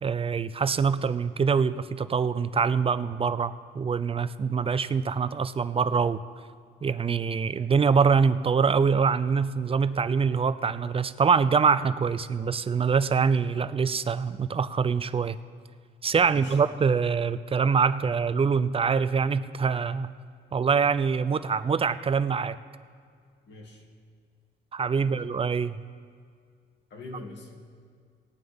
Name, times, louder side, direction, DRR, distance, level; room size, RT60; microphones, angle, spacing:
voice 1, 0.0-6.2 6.8-15.4 16.0-20.1 20.5-22.6 24.7-25.8, right 5 dB, 30° right, 14 dB, 0.5 m, -24 dB
voice 2, 16.2-16.6 23.5-23.9 25.0-25.2 26.9-27.6, left 2 dB, 60° left, 1 dB, 2.4 m, -43 dB
18.5 x 9.2 x 3.7 m, 2.1 s
cardioid pair, 90°, 20 cm